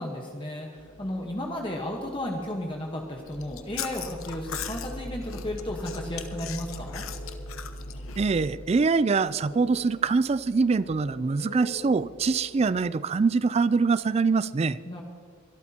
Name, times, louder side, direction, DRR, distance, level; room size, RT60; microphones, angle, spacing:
voice 1, 0.0-7.0 14.9-15.0, left 1 dB, 25° left, 0 dB, 1.2 m, -34 dB
sound 1, 0.8-12.9, left 2 dB, 50° left, 2.3 m, -49 dB
Chewing mastication, 3.3-8.6, left 3 dB, 85° left, 1.0 m, -37 dB
voice 2, 8.2-14.8, right 4 dB, 30° right, 17 dB, 0.3 m, -24 dB
23.5 x 12.5 x 2.9 m, 2.2 s
head